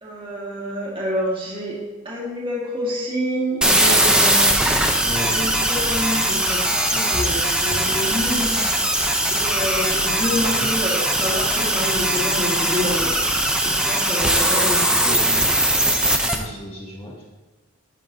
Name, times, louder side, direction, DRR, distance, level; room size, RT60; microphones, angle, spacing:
voice 1, 0.0-1.8 2.0-4.4 5.1-8.6 9.3-13.1 13.6-14.9, equal, 25° right, -4 dB, 1.8 m, -27 dB
sound 1, 3.6-16.3, right 1 dB, 5° right, 0.7 m, -20 dB
voice 2, 5.0-5.4 10.3-10.7 14.9-15.5 16.2-17.2, equal, 25° left, -4 dB, 2.0 m, -34 dB
Cat, 5.7-10.8, equal, 65° right, 3.4 m, -37 dB
10.0 x 9.8 x 2.8 m, 1.2 s
head